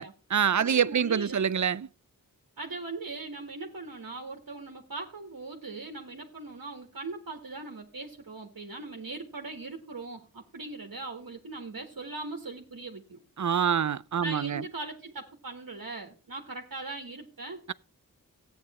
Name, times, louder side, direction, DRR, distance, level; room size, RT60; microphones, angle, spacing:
voice 1, 0.0-1.9 13.4-14.6, right 7 dB, 55° right, 0.5 m, -26 dB
voice 2, 0.6-1.4 2.6-13.2 14.2-17.7, right 3 dB, 70° right, 1.6 m, -40 dB
13.5 x 9.4 x 4.3 m
wide cardioid pair, 45°, 35 cm